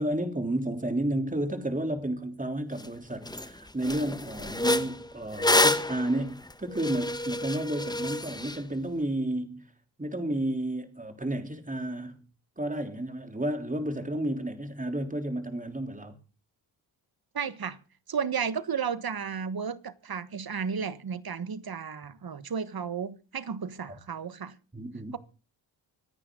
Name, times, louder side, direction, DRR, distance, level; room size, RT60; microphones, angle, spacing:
voice 1, 0.0-9.7 10.0-12.2 12.6-16.2 23.9-24.0 24.7-25.2, right 1 dB, 15° right, 3.5 m, -32 dB
sound 1, 2.8-2.9 3.3-3.5 3.8-8.6, left 1 dB, 10° left, 1.1 m, -28 dB
voice 2, 17.3-17.8 18.1-24.6, right 6 dB, 50° right, 1.5 m, -33 dB
25.5 x 9.7 x 3.9 m
cardioid pair, 55°, 48 cm